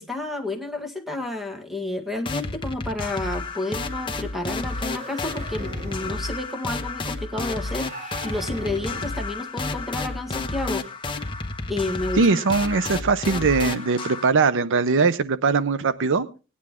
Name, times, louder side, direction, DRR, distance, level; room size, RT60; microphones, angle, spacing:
voice 1, 0.0-10.9 11.7-12.3, left 2 dB, ahead, 5 dB, 1.6 m, -30 dB
sound 1, 2.2-14.3, left 3 dB, 25° left, 1.1 m, -31 dB
sound 2, 4.7-6.3 7.7-9.3, right 2 dB, 35° right, 3.1 m, -40 dB
voice 2, 12.2-16.3, right 4 dB, 60° right, 14 dB, 0.6 m, -21 dB
18.0 x 9.8 x 3.6 m, 0.33 s
head